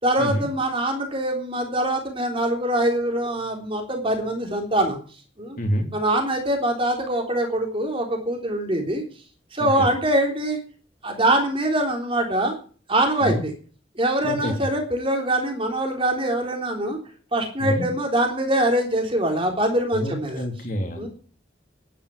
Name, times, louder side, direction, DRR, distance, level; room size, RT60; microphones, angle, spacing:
voice 1, 0.0-5.0 5.4-5.6 5.9-9.0 9.5-10.6 11.0-12.5 12.9-13.5 14.0-17.0 17.3-20.4 21.0-21.1, right 1 dB, 30° right, 3 dB, 3.7 m, -23 dB
voice 2, 5.6-5.9 9.6-9.9 13.2-13.4 14.2-14.5 17.6-17.9 19.9-21.1, equal, 40° left, 4 dB, 3.2 m, -27 dB
11.5 x 10.0 x 9.8 m, 0.41 s
head